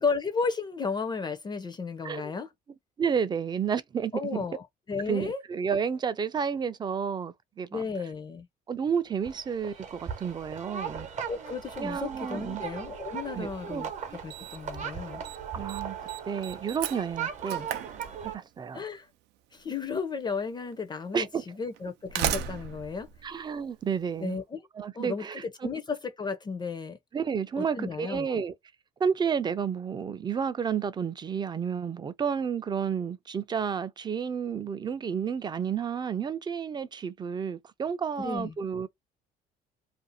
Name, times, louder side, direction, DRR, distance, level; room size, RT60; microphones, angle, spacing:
voice 1, 0.0-2.5 4.1-5.4 7.7-8.5 11.3-13.9 14.2-15.2 18.7-19.1 19.5-23.1 24.2-24.6 24.9-27.0 27.6-28.4 38.2-38.6, left 5 dB, 25° left, 0.5 m, -34 dB
voice 2, 3.0-4.4 5.1-7.8 8.7-11.1 11.8-12.6 13.3-13.8 15.5-16.0 16.3-17.7 18.3-18.8 21.1-21.4 23.2-24.4 24.8-25.4 27.1-28.5 29.0-38.9, right 7 dB, 25° right, 0.4 m, -31 dB
sound 1, 9.2-18.4, right 8 dB, 45° right, 0.8 m, -38 dB
Slam, 13.5-13.6 14.3-14.8 15.0-15.4 15.7-18.6 19.7-19.8 20.7-20.8 21.7-24.1, right 9 dB, 85° right, 0.5 m, -35 dB
2.5 x 2.3 x 2.7 m
cardioid pair, 110°, 17 cm